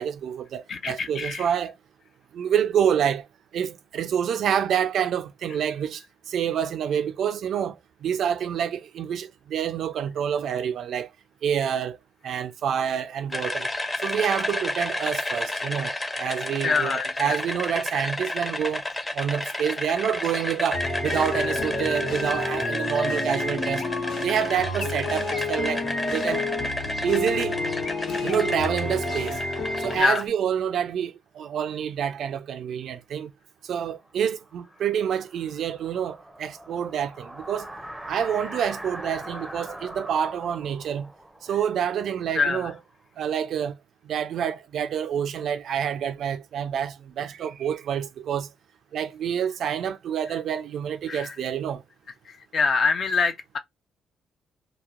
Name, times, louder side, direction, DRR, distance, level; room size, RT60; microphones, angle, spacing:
voice 1, 0.0-1.7 2.3-3.3 3.5-6.0 6.3-7.8 8.0-11.1 11.4-12.0 12.2-13.7 14.0-18.8 19.1-23.8 24.2-26.4 27.0-27.6 28.2-29.4 29.8-33.3 33.7-37.7 38.1-41.1 41.4-42.8 43.2-43.8 44.1-48.5 48.9-51.8, right 8 dB, 70° right, 0.3 m, -27 dB
voice 2, 0.7-1.5 16.6-17.4 29.9-30.2 42.3-42.7 51.1-51.3 52.3-53.6, left 4 dB, 55° left, 0.7 m, -25 dB
sound 1, 13.3-30.2, left 2 dB, 20° left, 0.8 m, -32 dB
sound 2, 20.7-30.0, left 2 dB, 75° left, 1.3 m, -29 dB
sound 3, 34.1-42.9, right 1 dB, 10° right, 0.6 m, -42 dB
2.8 x 2.1 x 2.4 m
cardioid pair, 90°, 0 cm